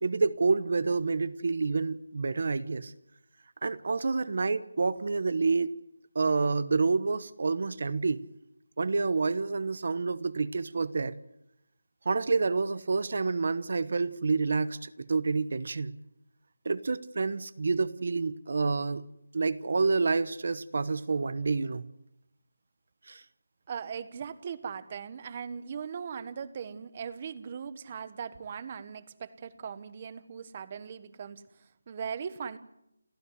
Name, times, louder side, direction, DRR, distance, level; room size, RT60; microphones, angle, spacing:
voice 1, 0.0-2.9 3.6-5.7 6.1-8.2 8.8-11.1 12.0-15.9 16.6-19.0 19.3-21.9 23.1-23.2, right 4 dB, 45° right, 16 dB, 1.0 m, -28 dB
voice 2, 23.7-32.6, right 7 dB, 20° right, 15 dB, 1.1 m, -39 dB
29.5 x 14.5 x 9.5 m, 0.82 s
figure-of-eight pair, 175°, 0 cm